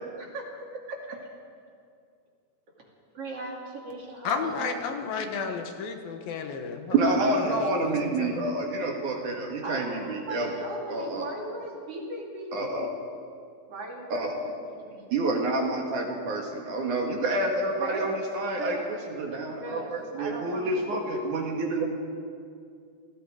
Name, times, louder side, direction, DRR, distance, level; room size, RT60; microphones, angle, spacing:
voice 1, 0.2-1.3 2.8-2.9 3.1-4.9 9.6-12.8 13.7-15.1 17.7-18.9 19.6-21.3, right 2 dB, 40° right, -1 dB, 3.5 m, -38 dB
voice 2, 4.2-8.5, left 6 dB, 75° left, 5 dB, 3.0 m, -33 dB
voice 3, 6.9-10.5 10.9-11.3 12.5-12.9 14.1-14.5 15.1-18.8 19.2-21.9, right 2 dB, 60° right, 1 dB, 3.2 m, -28 dB
29.5 x 19.0 x 5.0 m, 2.3 s
omnidirectional pair, 4.3 m